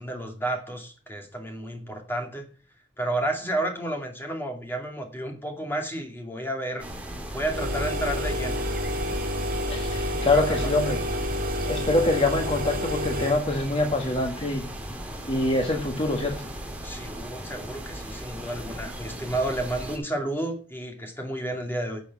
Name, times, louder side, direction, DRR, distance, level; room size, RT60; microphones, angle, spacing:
voice 1, 0.0-2.5 3.0-6.9 7.3-8.6 10.3-10.7 16.8-22.0, right 1 dB, 10° left, 3 dB, 2.5 m, -31 dB
sound 1, 6.8-20.0, right 1 dB, 10° right, 2.3 m, -37 dB
Fridge Stereo, 7.4-13.5, equal, 50° right, 2.5 m, -29 dB
voice 2, 9.7-11.0 11.6-14.6 15.3-16.5, left 2 dB, 30° left, 3 dB, 1.3 m, -25 dB
11.0 x 7.0 x 7.2 m, 0.38 s
head